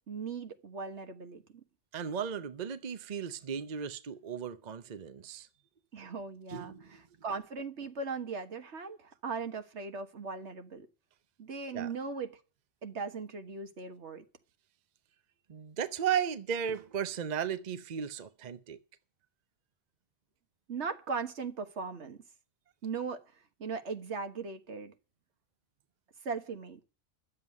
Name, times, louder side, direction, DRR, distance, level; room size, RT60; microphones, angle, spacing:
voice 1, 0.1-1.6 5.9-10.9 11.4-12.4 12.8-14.3 20.7-22.2 22.8-23.2 23.6-24.9 26.2-26.8, right 5 dB, 80° right, 1.7 m, -38 dB
voice 2, 1.9-5.5 6.5-7.0 11.7-11.9 15.5-18.8, right 8 dB, 45° right, 0.8 m, -35 dB
11.0 x 7.7 x 9.6 m
omnidirectional pair, 1.2 m